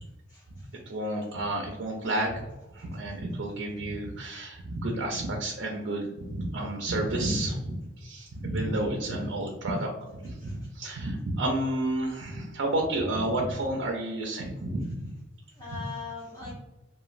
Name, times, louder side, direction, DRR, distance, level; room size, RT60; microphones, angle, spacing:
voice 1, 0.3-0.7 10.4-10.6 15.5-16.5, left 5 dB, 25° left, -7 dB, 0.6 m, -41 dB
voice 2, 0.9-2.4 2.7-9.9 10.2-15.1 15.7-15.8, right 1 dB, 65° right, 1 dB, 0.4 m, -30 dB
3.0 x 2.2 x 2.4 m, 1.1 s
head